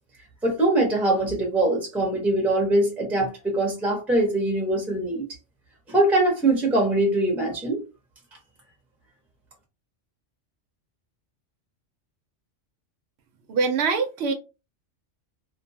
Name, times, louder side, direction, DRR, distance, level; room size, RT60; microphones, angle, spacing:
voice 1, 0.4-5.3 5.9-7.8, right 2 dB, ahead, 0.7 m, -22 dB
voice 2, 13.5-14.3, right 4 dB, 65° right, 0.8 m, -23 dB
2.6 x 2.2 x 2.7 m
omnidirectional pair, 1.2 m